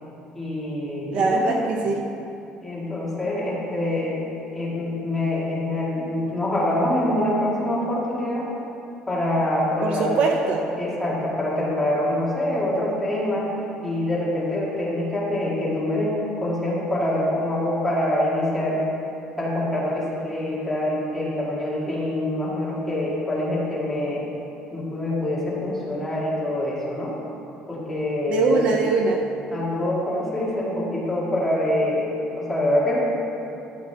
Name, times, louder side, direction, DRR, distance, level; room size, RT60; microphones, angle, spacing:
voice 1, 0.3-1.6 2.6-4.1 4.5-8.5 9.1-10.2 10.7-13.5 13.8-18.8 19.4-24.2 24.7-27.1 27.7-28.7 29.5-33.0, left 1 dB, 5° left, -7 dB, 1.9 m, -25 dB
voice 2, 1.1-2.0 9.8-10.6 28.3-29.2, right 4 dB, 45° right, 2 dB, 0.6 m, -22 dB
12.5 x 7.7 x 3.4 m, 2.8 s
cardioid pair, 175°, 3 cm